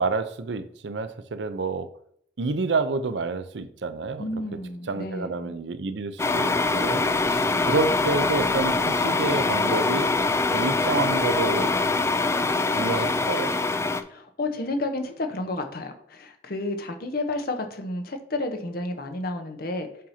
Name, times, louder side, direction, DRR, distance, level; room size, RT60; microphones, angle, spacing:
voice 1, 0.0-1.9 2.4-4.4 4.9-10.1 10.5-11.7 12.8-13.5, right 3 dB, 90° right, 11 dB, 0.6 m, -28 dB
voice 2, 4.2-5.5 7.5-7.7 14.1-19.9, left 2 dB, 60° left, 5 dB, 0.9 m, -31 dB
sound 1, 6.2-14.0, left 3 dB, 15° left, 0.3 m, -24 dB
7.4 x 2.8 x 5.6 m, 0.65 s
head